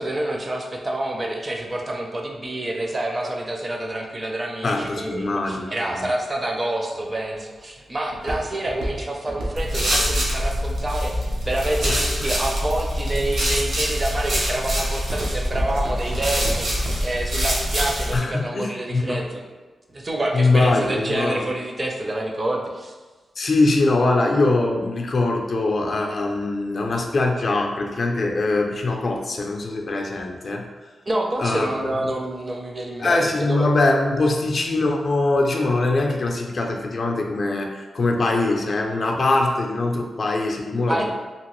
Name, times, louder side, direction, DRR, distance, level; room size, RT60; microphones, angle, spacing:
voice 1, 0.0-19.4 19.9-22.9 31.1-33.7 40.9-41.1, right 1 dB, 30° right, 0 dB, 0.5 m, -27 dB
voice 2, 4.6-6.1 11.8-12.3 18.1-19.3 20.3-21.5 23.4-30.6 31.4-31.7 33.0-41.1, left 2 dB, 50° left, 1 dB, 0.4 m, -22 dB
Walk footsteps, 7.0-12.1 12.7-13.2 13.7-14.0 14.4-17.3 17.6-17.7, right 1 dB, 90° right, 0.6 m, -32 dB
sound 1, 9.6-18.2, equal, 70° right, 1.0 m, -24 dB
2.8 x 2.5 x 3.0 m, 1.3 s
wide cardioid pair, 105°, 0 cm